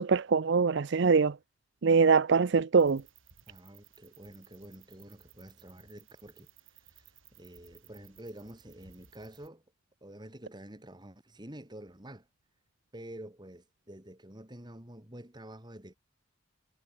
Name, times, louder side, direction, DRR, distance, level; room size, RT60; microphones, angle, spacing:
voice 1, 0.0-1.4 1.8-3.0, right 5 dB, 60° right, 0.5 m, -23 dB
sound 1, 2.8-9.5, right 9 dB, 75° right, 6.4 m, -60 dB
voice 2, 3.5-6.5 6.8-9.6 10.0-12.3 12.9-16.0, right 1 dB, 20° right, 2.7 m, -48 dB
head